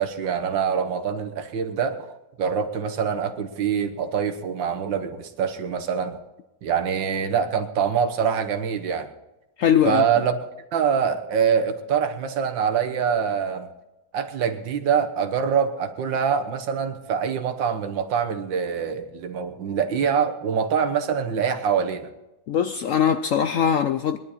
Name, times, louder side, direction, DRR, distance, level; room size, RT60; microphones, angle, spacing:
voice 1, 0.0-2.1 2.4-6.2 6.6-9.1 9.8-10.3 10.7-13.7 14.1-22.1, right 7 dB, 90° right, 1.9 m, -24 dB
voice 2, 9.6-10.0 22.5-24.2, left 8 dB, 70° left, 0.7 m, -21 dB
20.5 x 11.0 x 4.2 m
omnidirectional pair, 2.0 m